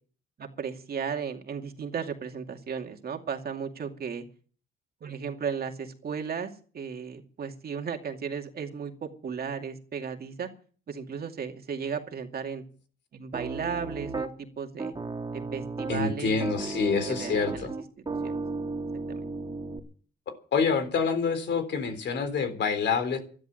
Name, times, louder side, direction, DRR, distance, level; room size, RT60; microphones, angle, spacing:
voice 1, 0.4-4.2 5.0-10.5 10.9-12.6 13.1-14.3 14.6-14.9 15.3-17.7 18.2-18.4 19.1-19.3, right 6 dB, 50° right, 4 dB, 2.5 m, -35 dB
Piano, 13.3-14.3 14.8-16.0 16.4-19.8, right 3 dB, 20° right, 2.5 m, -34 dB
voice 2, 15.9-17.7 20.5-23.2, left 5 dB, 65° left, 9 dB, 3.8 m, -27 dB
13.0 x 11.5 x 7.8 m, 0.41 s
cardioid pair, 90°, 20 cm